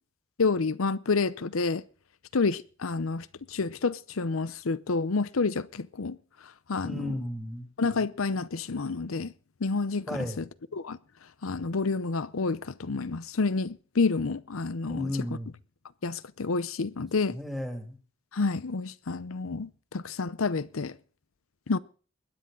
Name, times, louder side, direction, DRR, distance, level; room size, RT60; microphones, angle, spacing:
voice 1, 0.4-1.8 2.3-6.2 6.4-7.1 7.8-9.3 9.6-10.4 10.7-11.0 11.4-15.1 16.0-17.4 18.3-21.0 21.7-21.8, left 4 dB, 80° left, 0.7 m, -29 dB
voice 2, 6.8-7.7 10.1-10.4 14.9-15.5 17.3-18.0, left 1 dB, ahead, 2.6 m, -34 dB
21.5 x 10.0 x 3.9 m
head